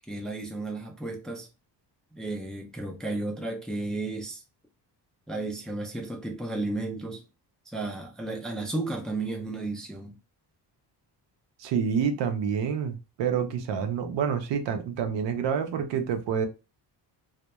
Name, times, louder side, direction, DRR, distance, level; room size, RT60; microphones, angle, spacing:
voice 1, 0.1-1.5 2.1-4.4 5.3-7.2 7.7-10.2, right 2 dB, ahead, 0.3 m, -33 dB
voice 2, 11.6-16.5, right 7 dB, 85° right, 0.6 m, -28 dB
2.2 x 2.1 x 2.8 m
cardioid pair, 130°, 43 cm